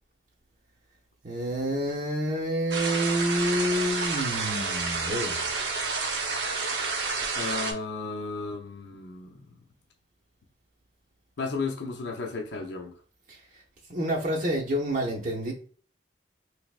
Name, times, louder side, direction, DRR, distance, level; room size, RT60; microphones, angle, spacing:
voice 1, 1.2-5.5 13.3-13.6 13.9-15.5, right 1 dB, 45° right, -2 dB, 0.7 m, -28 dB
sound 1, 2.7-7.7, right 4 dB, 80° right, 0.8 m, -29 dB
voice 2, 7.4-9.5 11.4-12.9, left 3 dB, 80° left, 1 dB, 0.6 m, -34 dB
3.4 x 3.2 x 2.4 m, 0.43 s
head